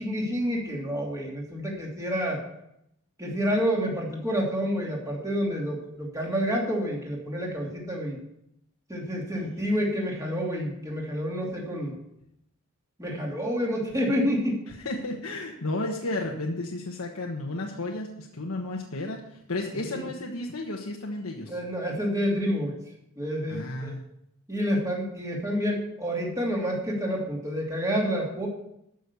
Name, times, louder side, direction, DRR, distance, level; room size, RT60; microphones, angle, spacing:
voice 1, 0.0-2.4 3.2-8.2 8.9-11.9 13.0-14.6 19.9-20.0 21.5-22.7 23.2-23.9 24.5-28.5, equal, 15° right, -2 dB, 2.8 m, -28 dB
voice 2, 9.3-9.7 14.7-21.6 23.5-24.0, left 2 dB, 85° left, 0 dB, 1.3 m, -33 dB
13.0 x 6.5 x 6.9 m, 0.80 s
head